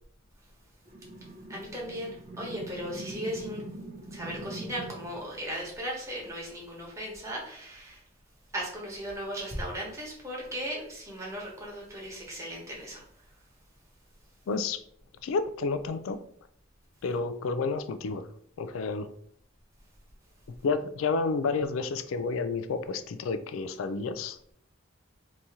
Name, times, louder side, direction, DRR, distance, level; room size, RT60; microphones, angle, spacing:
sound 1, 0.9-5.3, right 1 dB, 35° right, 0.6 m, -42 dB
voice 1, 1.5-3.6 4.1-8.0 8.5-13.3, equal, 15° right, -4 dB, 1.2 m, -37 dB
voice 2, 14.5-14.8 15.2-16.2 17.0-18.3 18.6-19.1 20.6-24.4, left 4 dB, 85° left, 11 dB, 0.3 m, -30 dB
2.9 x 2.7 x 3.5 m, 0.66 s
head